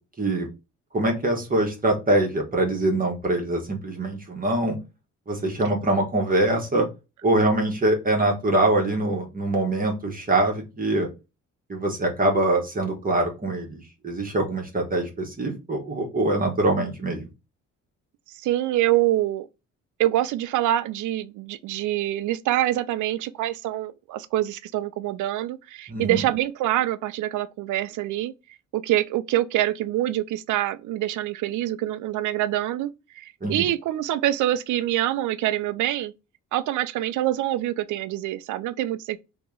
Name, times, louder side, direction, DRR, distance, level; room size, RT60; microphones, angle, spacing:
voice 1, 0.9-4.8 5.3-6.9 7.2-11.1 11.7-17.2 25.9-26.2 33.4-33.6, right 2 dB, 30° right, 1.3 m, -24 dB
voice 2, 18.3-19.5 20.0-28.3 28.7-32.9 33.1-36.1 36.5-39.2, right 14 dB, 80° right, 0.5 m, -25 dB
2.9 x 2.9 x 3.7 m
cardioid pair, 90°, 30 cm